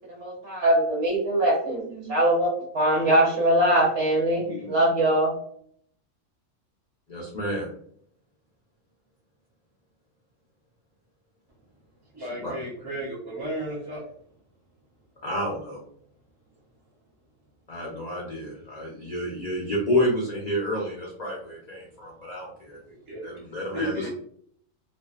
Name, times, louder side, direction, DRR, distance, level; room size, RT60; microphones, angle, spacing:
voice 1, 0.1-2.5 2.7-5.3, right 1 dB, 55° right, -3 dB, 1.1 m, -22 dB
voice 2, 7.1-7.7 12.2-12.5 15.2-15.8 17.7-22.8 23.2-24.1, left 1 dB, 55° left, -4 dB, 0.4 m, -29 dB
voice 3, 12.1-14.0 23.1-23.3 23.7-24.1, right 1 dB, 30° right, -7 dB, 0.4 m, -33 dB
2.6 x 2.1 x 2.3 m, 0.63 s
omnidirectional pair, 1.4 m